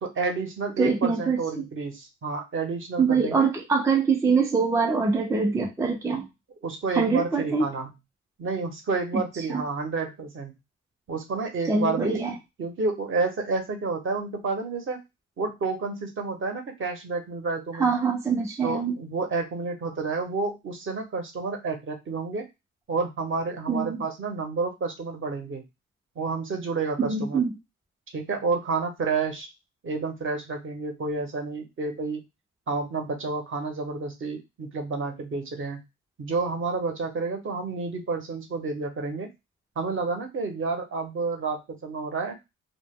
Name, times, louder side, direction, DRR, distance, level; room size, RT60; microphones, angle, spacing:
voice 1, 0.0-3.5 6.6-7.9 8.4-10.5 11.1-12.2 12.6-15.0 15.4-17.9 18.6-22.4 22.9-25.6 26.2-27.4 28.1-29.5 29.8-32.2 32.7-35.8 36.2-39.3 39.8-42.4, right 4 dB, 45° right, 3 dB, 0.8 m, -30 dB
voice 2, 0.8-1.4 3.0-6.3 6.9-7.7 9.5-9.6 11.7-12.3 17.8-18.9 23.7-24.0 27.0-27.6, right 5 dB, 10° right, 2 dB, 0.4 m, -24 dB
2.0 x 2.0 x 3.4 m, 0.23 s
cardioid pair, 90°, 30 cm